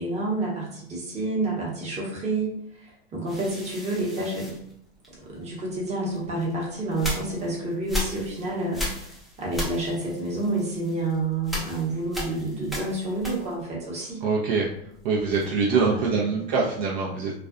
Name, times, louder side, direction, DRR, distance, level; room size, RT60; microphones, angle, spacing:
voice 1, 0.0-2.5 2.8-4.5 5.2-8.8 9.4-14.2 15.3-16.5, right 2 dB, 20° right, -4 dB, 0.9 m, -29 dB
sound 1, 3.3-5.5 6.1-13.8 14.1-15.7, left 1 dB, ahead, 0.3 m, -36 dB
voice 2, 14.2-14.7 15.0-17.3, right 4 dB, 55° right, -3 dB, 0.5 m, -24 dB
2.4 x 2.1 x 2.4 m, 0.71 s
hypercardioid pair, 120°, 31 cm